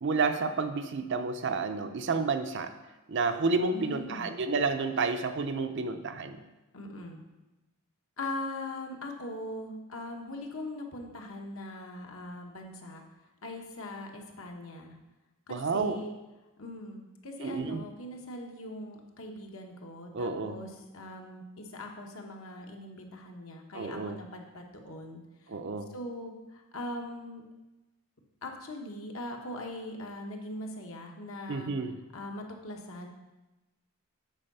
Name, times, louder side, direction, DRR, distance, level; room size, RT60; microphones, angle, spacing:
voice 1, 0.0-2.7 3.1-6.4 15.5-16.0 17.4-17.8 20.1-20.6 23.7-24.2 25.5-25.9 31.5-32.0, right 4 dB, 55° right, 8 dB, 0.6 m, -30 dB
voice 2, 3.7-4.3 6.7-7.2 8.2-13.0 13.4-14.9 15.5-16.1 16.6-25.2 25.9-27.4 28.4-31.7 32.1-33.1, left 1 dB, 65° left, 2 dB, 1.2 m, -41 dB
8.9 x 4.7 x 5.5 m, 1.1 s
head